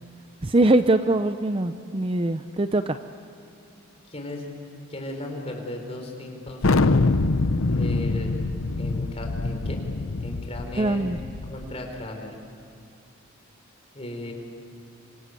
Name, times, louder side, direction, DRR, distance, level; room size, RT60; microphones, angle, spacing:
voice 1, 0.4-3.0 10.8-11.2, right 2 dB, 25° right, 9 dB, 0.6 m, -22 dB
voice 2, 4.1-4.5 4.9-6.9 7.7-8.3 8.8-9.8 10.2-11.1 11.4-12.3 13.9-14.3, left 1 dB, 30° left, 2 dB, 4.5 m, -36 dB
Thunder, 6.6-11.8, left 3 dB, 70° left, 0.8 m, -24 dB
28.0 x 25.0 x 8.2 m, 2.5 s
head